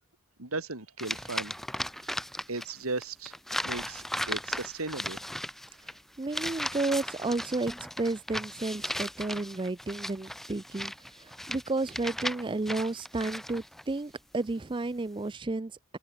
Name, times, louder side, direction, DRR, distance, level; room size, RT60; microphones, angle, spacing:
voice 1, 0.4-1.5 2.1-2.2 2.5-3.4 3.6-5.2, right 3 dB, 90° right, 3.7 m, -36 dB
sound 1, 1.0-2.7 3.0-13.8, equal, ahead, 1.0 m, -37 dB
voice 2, 6.2-7.7 8.0-10.9 11.2-16.0, right 2 dB, 25° right, 0.4 m, -32 dB
head